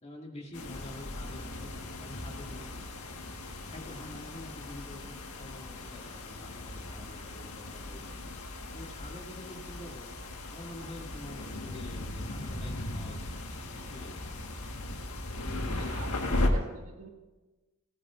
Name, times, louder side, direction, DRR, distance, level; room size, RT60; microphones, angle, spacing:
voice 1, 0.0-1.7 2.0-2.8 3.7-14.2, left 1 dB, 30° left, -1 dB, 2.5 m, -47 dB
sound 1, 0.5-16.5, left 2 dB, 90° left, 1.6 m, -37 dB
voice 2, 15.6-17.1, right 3 dB, 80° right, 1 dB, 2.0 m, -48 dB
19.0 x 18.5 x 2.6 m, 1.2 s
head